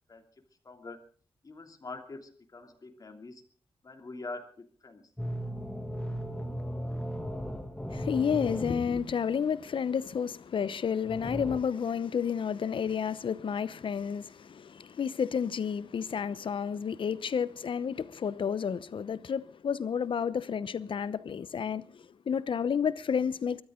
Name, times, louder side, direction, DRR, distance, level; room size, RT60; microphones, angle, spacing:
voice 1, 0.1-1.1 1.4-3.4 3.8-5.0, left 3 dB, 40° left, 2.9 m, -45 dB
sound 1, 5.2-9.4 11.1-11.6, equal, 10° left, 2.3 m, -36 dB
voice 2, 7.9-23.6, left 7 dB, 65° left, 0.9 m, -31 dB
23.5 x 13.0 x 3.8 m
wide cardioid pair, 105°, 9 cm